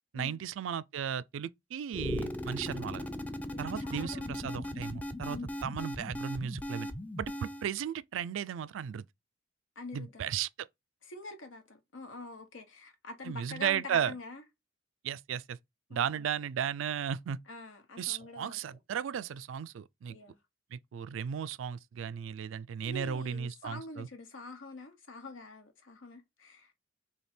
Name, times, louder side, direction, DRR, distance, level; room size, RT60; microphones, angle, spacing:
voice 1, 0.1-3.1 3.6-6.9 7.2-9.0 9.9-10.7 13.2-14.1 15.0-15.6 15.9-17.4 18.0-20.2 20.7-24.1, right 8 dB, 75° right, 0.3 m, -35 dB
sound 1, 1.9-7.7, left 1 dB, 10° left, 0.4 m, -38 dB
voice 2, 3.5-4.4 5.3-5.5 9.8-10.3 11.0-14.4 15.9-16.3 17.5-18.8 20.1-20.4 22.8-26.7, left 2 dB, 85° left, 1.1 m, -45 dB
3.4 x 2.8 x 4.2 m
head